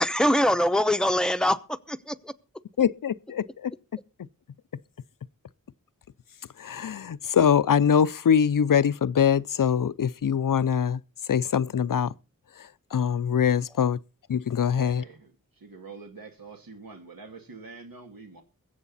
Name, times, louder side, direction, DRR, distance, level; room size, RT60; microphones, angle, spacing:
voice 1, 0.0-2.3, left 1 dB, ahead, 0.8 m, -23 dB
voice 2, 2.8-3.7 6.6-11.0 11.3-12.1 12.9-14.0 14.3-15.0, left 8 dB, 70° left, 0.6 m, -23 dB
voice 3, 14.7-18.4, right 4 dB, 80° right, 2.3 m, -46 dB
21.5 x 8.1 x 4.1 m
wide cardioid pair, 70°, 34 cm